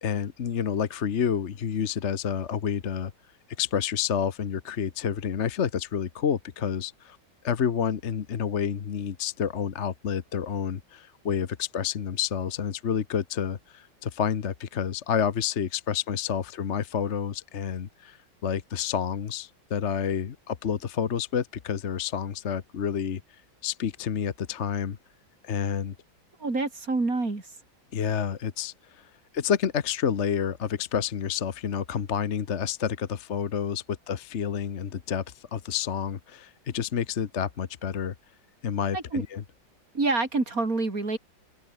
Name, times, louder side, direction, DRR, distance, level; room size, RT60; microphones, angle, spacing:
voice 1, 0.0-3.1 3.6-7.2 7.4-18.2 18.4-23.2 23.6-25.0 25.4-25.9 27.9-29.1 29.3-38.1 38.6-39.4, left 8 dB, 45° left, 1.1 m, -29 dB
voice 2, 26.4-27.5 38.9-39.2 39.9-41.2, right 3 dB, 45° right, 4.2 m, -27 dB
omnidirectional pair, 2.1 m